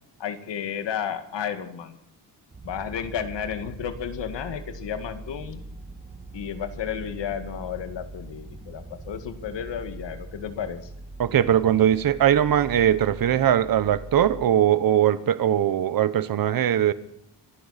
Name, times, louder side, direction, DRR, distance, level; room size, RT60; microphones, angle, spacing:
voice 1, 0.2-2.0 2.6-5.6 6.3-10.9, left 8 dB, 80° left, 2.0 m, -32 dB
sound 1, 2.5-14.5, right 2 dB, 20° right, 1.5 m, -41 dB
voice 2, 11.2-16.9, right 10 dB, 55° right, 1.0 m, -20 dB
25.5 x 11.5 x 4.2 m
wide cardioid pair, 160°, 42 cm